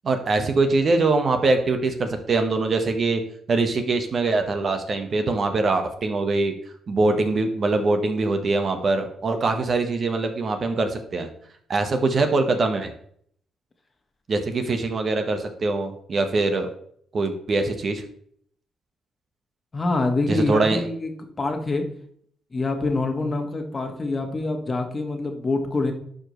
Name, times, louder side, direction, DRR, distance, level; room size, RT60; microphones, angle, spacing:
voice 1, 0.0-3.2 3.5-6.5 6.9-11.3 11.7-12.9 14.3-16.7 17.1-18.0 20.3-20.8, right 3 dB, 45° right, 6 dB, 1.2 m, -23 dB
voice 2, 19.7-21.1 21.4-21.8 22.5-25.9, left 3 dB, 30° left, 5 dB, 1.4 m, -25 dB
11.0 x 5.0 x 3.1 m, 0.64 s
cardioid pair, 90°, 0 cm